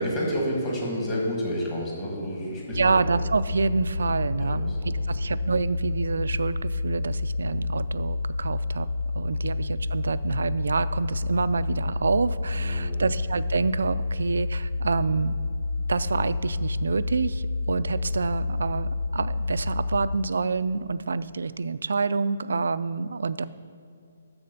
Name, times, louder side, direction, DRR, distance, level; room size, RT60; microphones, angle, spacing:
voice 1, 0.0-2.9 4.3-5.2 9.8-9.9 12.5-13.0, equal, 15° left, -4 dB, 1.5 m, -30 dB
sound 1, 2.7-20.2, left 3 dB, 85° left, 0.5 m, -29 dB
voice 2, 2.8-8.9 9.1-15.4 15.9-23.5, right 4 dB, 85° right, 15 dB, 0.4 m, -27 dB
12.5 x 4.2 x 6.7 m, 2.4 s
hypercardioid pair, 175°, 0 cm